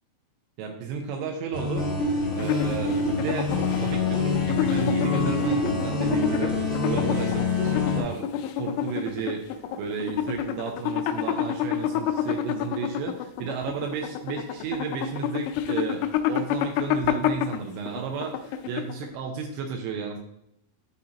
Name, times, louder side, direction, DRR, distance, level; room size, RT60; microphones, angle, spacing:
voice 1, 0.6-1.9 2.3-20.2, right 6 dB, 80° right, 3 dB, 2.8 m, -33 dB
sound 1, 1.5-8.0, left 3 dB, 50° left, 1.2 m, -26 dB
sound 2, 2.3-19.2, left 10 dB, 85° left, 3.0 m, -29 dB
11.5 x 4.1 x 2.9 m, 0.77 s
omnidirectional pair, 5.5 m